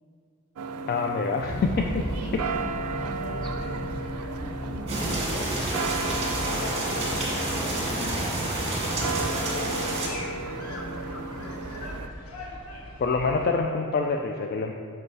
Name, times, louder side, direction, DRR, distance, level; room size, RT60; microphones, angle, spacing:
sound 1, 0.6-12.1, right 4 dB, 90° right, 0.4 m, -35 dB
voice 1, 0.9-2.0 13.0-14.8, left 4 dB, 45° left, 3 dB, 0.3 m, -26 dB
sound 2, 1.4-13.4, equal, 80° left, 1.2 m, -37 dB
voice 2, 2.1-3.9 4.3-11.6, equal, 25° left, 0 dB, 0.9 m, -43 dB
sound 3, 4.9-10.1, right 1 dB, 30° right, 1.6 m, -29 dB
6.2 x 5.4 x 4.6 m, 2.3 s
head